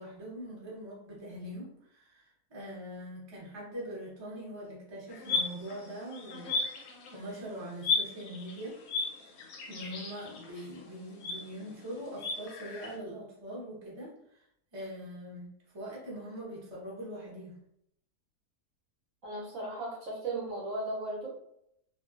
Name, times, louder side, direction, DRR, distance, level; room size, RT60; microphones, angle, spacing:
voice 1, 0.0-6.6 7.1-8.8 9.7-14.4 14.7-17.6, equal, 25° right, -6 dB, 0.6 m, -42 dB
sound 1, 5.1-7.4 7.8-12.9, left 3 dB, 70° left, 1.0 m, -35 dB
voice 2, 19.2-21.3, right 2 dB, 60° right, -4 dB, 0.9 m, -36 dB
2.5 x 2.3 x 2.3 m, 0.75 s
omnidirectional pair, 1.7 m